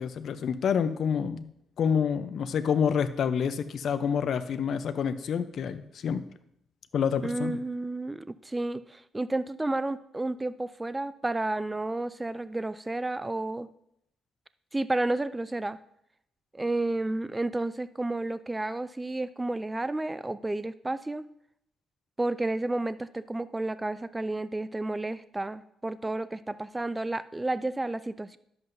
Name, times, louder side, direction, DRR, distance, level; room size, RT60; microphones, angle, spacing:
voice 1, 0.0-1.4 1.8-6.2 6.9-7.6, left 7 dB, 65° left, 11 dB, 0.6 m, -28 dB
voice 2, 7.2-13.7 14.7-15.8 16.5-21.2 22.2-28.4, right 2 dB, 15° right, 14 dB, 0.3 m, -31 dB
10.5 x 7.7 x 2.6 m, 0.75 s
cardioid pair, 90°, 0 cm